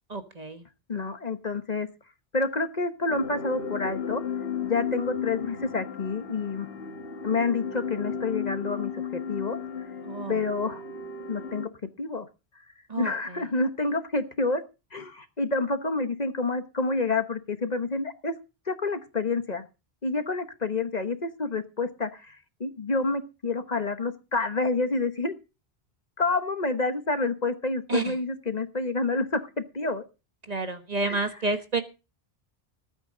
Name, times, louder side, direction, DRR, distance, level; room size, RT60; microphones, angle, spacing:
voice 1, 0.1-0.6 10.0-10.4 12.9-13.5 27.9-28.1 30.5-31.8, right 3 dB, 40° right, 8 dB, 1.4 m, -30 dB
voice 2, 0.9-1.9 2.3-4.2 4.6-6.7 7.2-9.6 10.3-10.8 11.3-11.7 12.0-12.3 13.0-14.6 14.9-18.4 18.7-19.6 20.0-25.3 26.2-30.0 31.0-31.2, left 3 dB, 45° left, 9 dB, 1.2 m, -28 dB
sound 1, 3.1-11.7, left 6 dB, 70° left, 1.4 m, -35 dB
19.0 x 9.1 x 3.8 m, 0.30 s
omnidirectional pair, 1.0 m